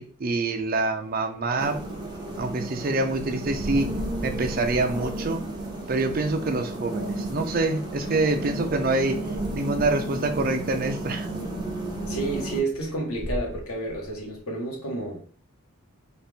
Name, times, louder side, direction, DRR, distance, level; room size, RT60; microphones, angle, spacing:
voice 1, 0.0-1.8 2.4-3.9 4.2-5.4 5.9-9.2 9.5-11.3, right 2 dB, 40° right, 0.5 m, -26 dB
sound 1, 1.6-12.6, right 1 dB, 20° right, 0.9 m, -32 dB
sound 2, 5.1-6.0 7.7-8.6 9.7-9.8 10.3-11.2 12.7-14.4, equal, 20° left, 0.5 m, -40 dB
voice 2, 12.1-15.2, right 2 dB, 85° left, 1.4 m, -30 dB
4.0 x 2.4 x 3.5 m
head